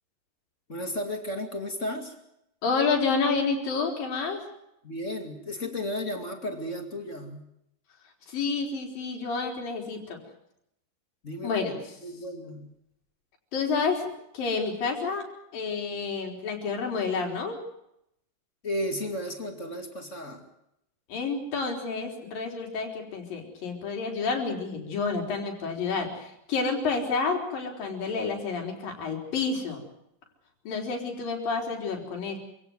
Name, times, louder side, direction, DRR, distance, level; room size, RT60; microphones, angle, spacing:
voice 1, 0.7-2.2 4.8-7.5 11.2-11.7 12.0-12.7 18.6-20.5, left 1 dB, 25° left, 5 dB, 2.4 m, -34 dB
voice 2, 2.6-4.4 8.3-10.2 11.4-11.8 13.5-14.1 14.3-15.2 15.5-17.6 21.1-29.8 30.7-32.4, left 4 dB, 85° left, 2 dB, 5.7 m, -29 dB
27.5 x 17.5 x 7.9 m, 0.80 s
omnidirectional pair, 3.9 m